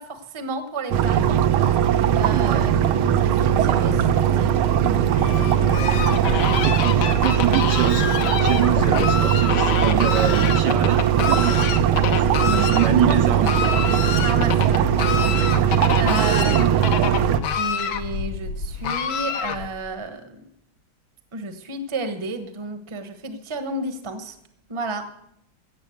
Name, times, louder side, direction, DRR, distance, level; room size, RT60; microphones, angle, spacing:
voice 1, 0.0-1.8 2.1-2.7 3.2-4.6 12.4-13.2 14.2-14.9 15.9-17.3 17.5-20.4 21.3-24.4 24.7-25.0, right 2 dB, 20° right, 9 dB, 0.8 m, -31 dB
sound 1, 0.9-17.4, right 9 dB, 85° right, 1.7 m, -19 dB
voice 2, 2.3-2.7 6.1-8.1 8.4-11.6 12.2-13.5 15.9-17.0, right 10 dB, 70° right, 8 dB, 1.2 m, -26 dB
Fowl, 5.1-19.9, left 7 dB, 70° left, 1.6 m, -27 dB
15.5 x 7.4 x 7.8 m, 0.74 s
omnidirectional pair, 2.3 m